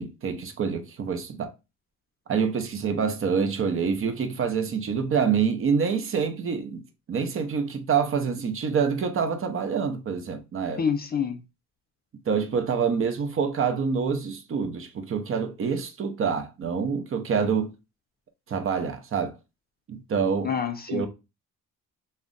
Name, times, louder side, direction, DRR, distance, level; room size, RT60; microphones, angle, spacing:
voice 1, 0.0-1.5 2.3-6.8 7.1-10.8 12.3-17.7 18.5-19.3 19.9-20.5 20.9-21.1, right 6 dB, 40° right, 0.7 m, -26 dB
voice 2, 10.8-11.4 20.4-21.1, left 7 dB, 30° left, 0.4 m, -27 dB
2.4 x 2.1 x 3.7 m
cardioid pair, 90°, 32 cm